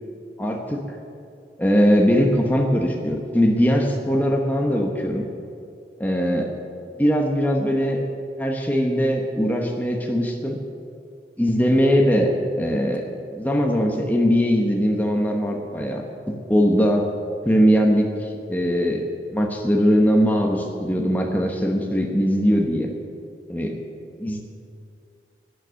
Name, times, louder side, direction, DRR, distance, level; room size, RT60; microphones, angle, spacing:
voice 1, 0.4-0.9 1.6-5.2 6.0-6.5 7.0-8.0 8.4-10.6 11.4-17.1 17.5-22.9 23.5-23.8 24.2-24.4, equal, 10° left, 1 dB, 1.0 m, -21 dB
11.5 x 9.6 x 7.6 m, 2.4 s
head